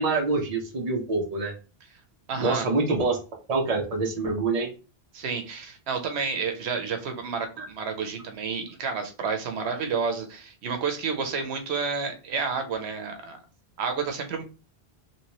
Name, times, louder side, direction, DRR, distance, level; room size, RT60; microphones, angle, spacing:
voice 1, 0.0-1.5 2.4-3.2 3.5-4.7 7.6-7.7, right 3 dB, 40° right, 2 dB, 0.8 m, -26 dB
voice 2, 2.3-2.6 5.1-13.4 13.8-14.4, right 5 dB, 85° right, 5 dB, 0.9 m, -30 dB
3.0 x 2.9 x 2.9 m, 0.33 s
omnidirectional pair, 1.1 m